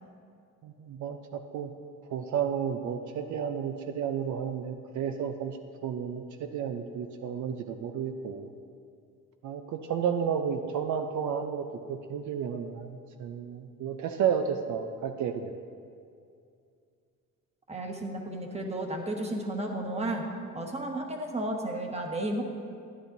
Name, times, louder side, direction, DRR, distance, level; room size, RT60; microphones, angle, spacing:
voice 1, 0.6-1.7 2.1-5.6 5.8-8.5 9.4-15.5, right 7 dB, 70° right, 6 dB, 0.6 m, -32 dB
voice 2, 17.7-20.3 20.5-22.4, right 1 dB, 20° right, 2 dB, 1.4 m, -33 dB
12.5 x 10.0 x 2.7 m, 2.4 s
cardioid pair, 90°, 30 cm